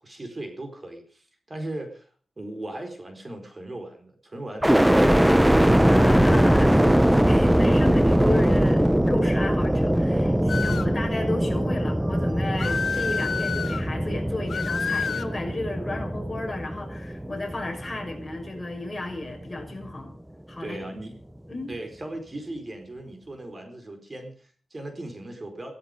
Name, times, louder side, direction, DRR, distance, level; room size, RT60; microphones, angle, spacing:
voice 1, 0.0-2.1 2.4-5.5 10.6-11.0 20.6-21.2 21.7-25.7, right 1 dB, 30° right, 5 dB, 4.4 m, -38 dB
sound 1, 4.6-18.6 19.1-19.9, equal, 5° right, 0.8 m, -21 dB
sound 2, 4.8-12.8, right 4 dB, 55° right, 1.1 m, -43 dB
voice 2, 5.9-20.1 20.5-20.8 21.5-21.7, left 2 dB, 25° left, 3 dB, 5.9 m, -33 dB
sound 3, 10.5-11.0 12.6-13.8 14.5-15.3, left 5 dB, 70° left, 1.3 m, -29 dB
16.5 x 14.5 x 5.3 m, 0.43 s
wide cardioid pair, 85°, 0 cm